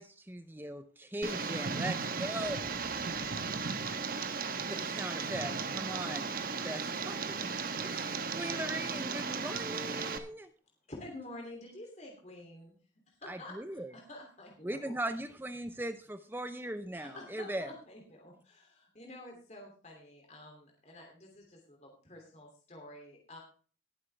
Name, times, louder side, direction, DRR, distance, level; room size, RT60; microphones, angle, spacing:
voice 1, 0.0-2.7 4.6-6.3 6.6-7.4 7.8-10.5 13.3-13.9 14.6-17.7, right 1 dB, 10° right, 9 dB, 0.6 m, -39 dB
Tick, 1.2-10.2, right 4 dB, 50° right, 1.1 m, -36 dB
voice 2, 2.5-4.7, equal, 60° left, -2 dB, 6.6 m, -57 dB
voice 3, 10.9-12.7 13.1-15.0 16.9-23.4, left 1 dB, 35° left, 0 dB, 2.8 m, -49 dB
19.5 x 8.1 x 3.4 m, 0.40 s
head